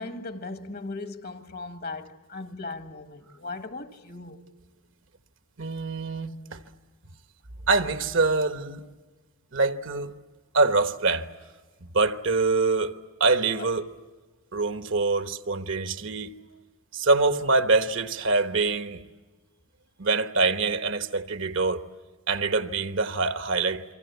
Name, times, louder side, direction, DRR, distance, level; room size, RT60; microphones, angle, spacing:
voice 1, 0.0-4.4 13.6-13.7, left 3 dB, 45° left, 1.6 m, -38 dB
voice 2, 5.6-6.6 7.7-8.9 9.5-10.1 10.5-11.3 11.8-12.9 13.2-13.9 14.5-16.3 16.9-19.0 20.0-21.8 22.3-23.8, right 3 dB, 60° right, 1.1 m, -24 dB
28.0 x 24.5 x 8.1 m
head